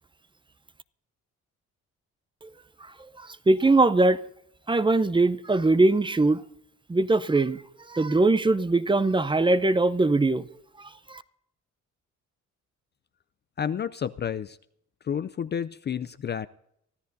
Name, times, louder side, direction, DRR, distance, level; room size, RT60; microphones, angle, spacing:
voice 1, 3.2-4.2 4.7-6.4 6.9-7.6 7.9-10.5 10.8-11.2, right 2 dB, 15° right, 0.7 m, -22 dB
voice 2, 13.6-14.6 15.0-16.5, left 8 dB, 35° left, 0.4 m, -30 dB
24.0 x 14.0 x 2.7 m
cardioid pair, 90°, 30 cm